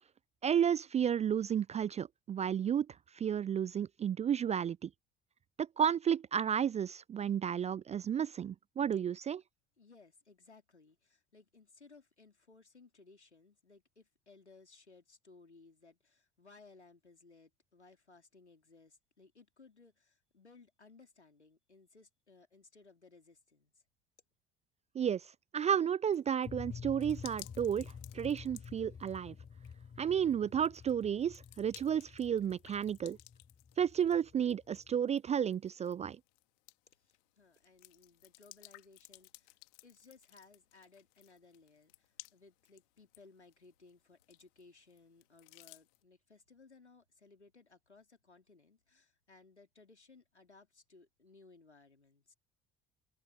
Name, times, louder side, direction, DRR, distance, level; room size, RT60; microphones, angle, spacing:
voice 1, 0.4-2.9 3.2-4.9 5.6-9.4 24.9-25.2 25.5-29.3 30.0-33.2 33.8-36.2, right 8 dB, 20° right, 0.4 m, -32 dB
voice 2, 9.8-23.7 36.9-39.6 39.8-52.3, left 3 dB, 85° left, 3.6 m, -61 dB
sound 1, 26.1-46.0, left 30 dB, 65° left, 2.4 m, -59 dB
sound 2, 26.4-35.0, left 6 dB, 30° left, 7.7 m, -50 dB
figure-of-eight pair, 55°, 33 cm